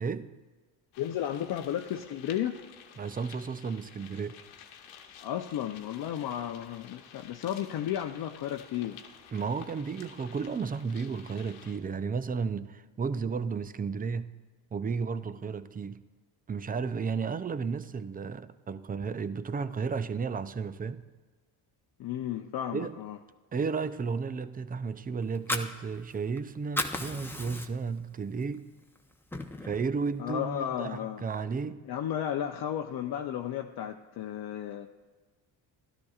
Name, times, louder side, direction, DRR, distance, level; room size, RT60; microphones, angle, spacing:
voice 1, 0.0-0.3 3.0-4.4 9.3-14.3 14.7-16.0 16.5-21.0 22.7-23.0 23.5-28.7 29.6-31.8, right 5 dB, 20° right, 0.4 m, -33 dB
sound 1, 0.9-11.8, left 8 dB, 85° left, 1.1 m, -52 dB
voice 2, 1.0-2.6 5.2-9.0 22.0-23.2 30.2-31.2 31.9-34.9, left 10 dB, 55° left, 0.7 m, -33 dB
Fire, 25.2-26.4 26.6-28.0 28.4-28.6 28.9-29.9, left 2 dB, 5° left, 0.8 m, -34 dB
13.0 x 12.0 x 2.4 m
supercardioid pair, 80°, 46 cm